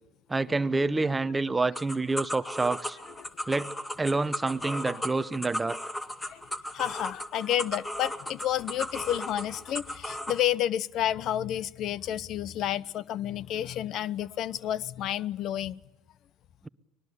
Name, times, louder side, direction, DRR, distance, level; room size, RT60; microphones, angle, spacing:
voice 1, 0.3-3.0 3.5-3.7 4.0-5.8, right 3 dB, 15° right, 0.8 m, -27 dB
sound 1, 1.7-10.4, left 1 dB, 10° left, 2.1 m, -36 dB
voice 2, 6.7-15.8, left 11 dB, 55° left, 0.8 m, -30 dB
24.5 x 20.5 x 8.3 m
supercardioid pair, 105°, 0 cm